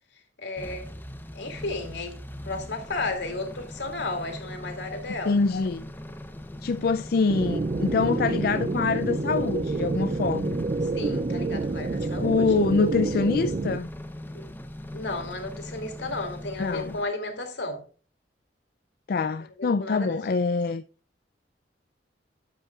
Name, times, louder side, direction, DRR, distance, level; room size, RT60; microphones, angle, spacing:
voice 1, 0.4-0.9 1.3-2.1 2.4-5.4 10.9-12.6 14.3-14.5 14.9-17.8 19.6-20.2, left 2 dB, 80° left, 2.9 m, -33 dB
sound 1, 0.6-17.0, left 1 dB, 10° left, 0.8 m, -40 dB
voice 2, 5.3-5.8 6.6-10.6 12.2-13.9 16.6-16.9 19.1-20.8, left 4 dB, 55° left, 0.4 m, -25 dB
sound 2, 7.3-13.8, right 3 dB, 40° right, 0.4 m, -28 dB
13.0 x 8.2 x 2.4 m
head